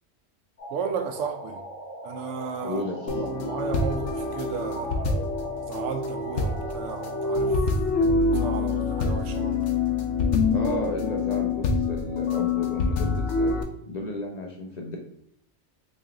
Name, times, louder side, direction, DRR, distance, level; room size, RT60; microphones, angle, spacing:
sound 1, 0.6-7.6, right 1 dB, 40° left, 0.9 m, -40 dB
voice 1, 0.7-1.6 2.0-2.8 3.2-5.3 5.7-7.6 8.3-9.6, right 6 dB, 90° right, 6 dB, 0.9 m, -34 dB
voice 2, 2.6-3.2 10.5-13.6 13.9-15.0, left 2 dB, 55° left, 1 dB, 0.5 m, -33 dB
sound 2, 3.1-13.6, left 3 dB, 90° left, 0.9 m, -26 dB
3.0 x 2.9 x 3.6 m, 0.72 s
omnidirectional pair, 1.2 m